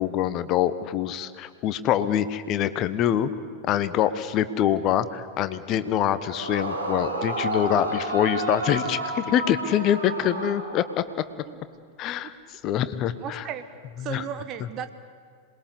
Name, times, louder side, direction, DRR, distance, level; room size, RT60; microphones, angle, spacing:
voice 1, 0.0-3.3 3.7-11.0 12.0-13.4 14.0-14.2 14.6-14.7, left 10 dB, 35° left, 13 dB, 1.1 m, -25 dB
Yell / Screaming, 6.3-11.2, right 2 dB, 80° right, 3.6 m, -31 dB
voice 2, 13.2-13.6 14.0-14.9, right 9 dB, 35° right, 10 dB, 1.3 m, -35 dB
27.0 x 20.5 x 8.3 m, 2.1 s
figure-of-eight pair, 90°, 0 cm